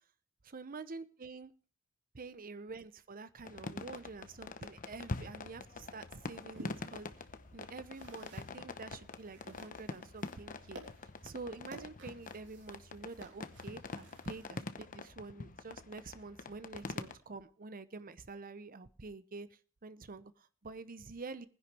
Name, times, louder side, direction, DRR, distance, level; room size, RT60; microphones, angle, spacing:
voice 1, 0.4-1.5 2.1-7.3 7.5-10.8 11.2-21.5, right 3 dB, 40° right, 14 dB, 0.8 m, -47 dB
sound 1, 3.4-17.2, left 3 dB, 40° left, 0.9 m, -45 dB
sound 2, 5.6-14.7, right 1 dB, 60° right, 3.1 m, -56 dB
19.5 x 10.5 x 3.4 m, 0.40 s
head